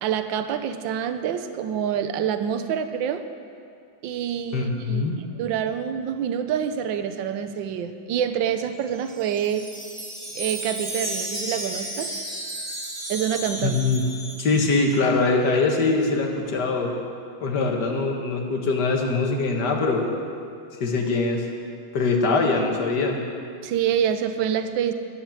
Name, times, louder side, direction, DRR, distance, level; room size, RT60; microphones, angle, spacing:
voice 1, 0.0-3.2 4.0-9.7 10.3-12.1 13.1-13.8 23.6-24.9, right 9 dB, 75° right, 9 dB, 1.4 m, -26 dB
voice 2, 4.5-5.2 13.6-14.0 14.4-16.9 17.4-20.0 20.8-21.4 21.9-23.2, left 3 dB, 55° left, 2 dB, 2.1 m, -22 dB
Wind chime, 8.8-15.0, right 1 dB, 20° right, 2.5 m, -33 dB
14.0 x 10.5 x 7.2 m, 2.4 s
omnidirectional pair, 2.2 m